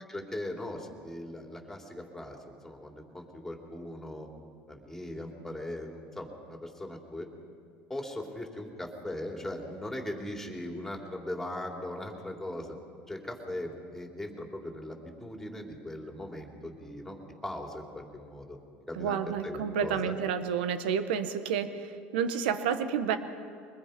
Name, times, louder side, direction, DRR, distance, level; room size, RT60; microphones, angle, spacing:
voice 1, 0.1-4.3 4.7-7.3 7.9-12.8 13.1-18.6 18.9-19.2 19.4-20.1, left 1 dB, 5° left, 1 dB, 3.5 m, -39 dB
voice 2, 18.9-23.2, right 7 dB, 85° right, 10 dB, 1.3 m, -30 dB
24.0 x 20.5 x 5.3 m, 2.2 s
supercardioid pair, 100°, 5 cm